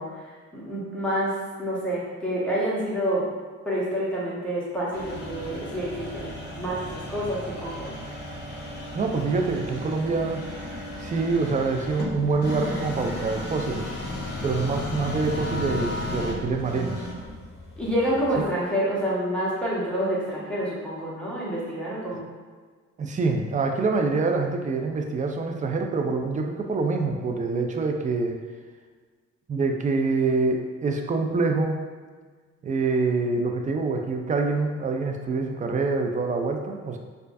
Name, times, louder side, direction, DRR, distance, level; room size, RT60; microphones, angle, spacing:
voice 1, 0.0-3.2 3.6-7.9 17.8-22.3, equal, 5° left, -8 dB, 1.1 m, -28 dB
sound 1, 4.9-18.5, left 1 dB, 35° left, 0.9 m, -34 dB
voice 2, 8.9-10.4 11.0-13.9 14.4-17.1 18.4-18.5 23.0-28.4 29.5-31.8 32.6-37.0, right 3 dB, 25° right, 3 dB, 0.4 m, -25 dB
4.4 x 2.5 x 2.5 m, 1.5 s
cardioid pair, 90°, 30 cm